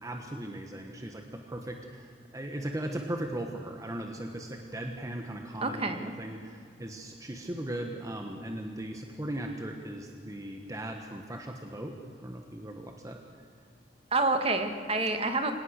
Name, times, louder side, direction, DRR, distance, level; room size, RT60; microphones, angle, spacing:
voice 1, 0.0-11.9 12.2-13.2, right 1 dB, 20° right, 3 dB, 1.3 m, -38 dB
voice 2, 5.6-6.1 14.1-15.5, right 3 dB, 35° right, 7 dB, 1.8 m, -28 dB
25.0 x 18.0 x 6.5 m, 2.4 s
head